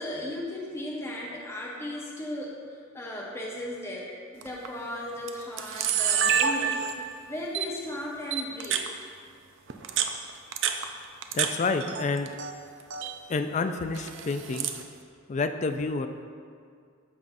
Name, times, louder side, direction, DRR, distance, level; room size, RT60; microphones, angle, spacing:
voice 1, 0.0-2.6 2.9-8.8, left 1 dB, 10° left, -3 dB, 0.7 m, -36 dB
Camera, 4.4-4.7 5.3-5.4 5.6-7.1 7.5-7.7 8.3-8.9 9.7-11.5 11.8-12.5 12.8-13.1 13.9-14.8, right 8 dB, 60° right, 0.5 m, -28 dB
voice 2, 11.3-12.3 13.3-14.7 15.3-16.1, left 3 dB, 35° left, 8 dB, 0.3 m, -28 dB
13.5 x 5.5 x 2.6 m, 2.2 s
head